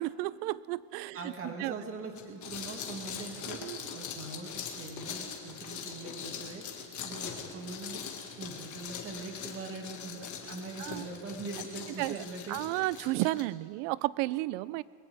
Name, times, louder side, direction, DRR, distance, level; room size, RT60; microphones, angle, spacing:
voice 1, 0.0-1.8 3.6-3.8 10.8-11.1 12.0-12.2 12.5-14.8, right 18 dB, 80° right, 20 dB, 0.5 m, -33 dB
voice 2, 1.1-6.6 7.0-8.0 8.4-12.6, right 3 dB, 30° right, 2 dB, 2.2 m, -42 dB
sound 1, 2.1-13.4, left 7 dB, 40° left, 1.9 m, -42 dB
22.0 x 17.5 x 3.5 m, 2.1 s
cardioid pair, 135°, 45 cm